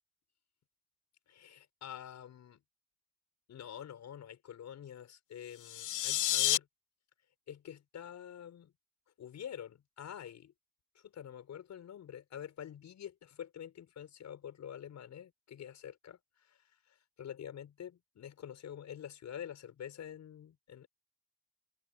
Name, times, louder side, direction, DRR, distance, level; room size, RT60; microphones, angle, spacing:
voice 1, 1.3-2.6 3.5-6.7 7.5-8.7 9.2-10.5 10.9-20.9, left 9 dB, 65° left, 6.3 m, -47 dB
sound 1, 5.5-6.6, left 13 dB, 80° left, 3.5 m, -30 dB
cardioid pair, 90°, 30 cm